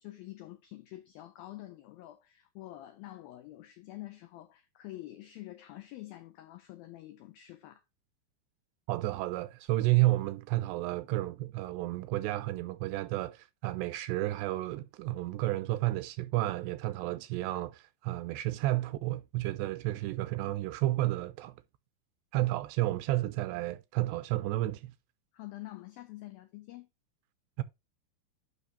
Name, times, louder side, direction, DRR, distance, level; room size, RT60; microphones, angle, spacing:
voice 1, 0.0-7.8 25.3-26.9, left 16 dB, 90° left, 2.1 m, -47 dB
voice 2, 8.9-21.5 22.3-24.9 27.6-27.7, right 17 dB, 85° right, 2.6 m, -31 dB
12.0 x 5.5 x 2.7 m
omnidirectional pair, 5.2 m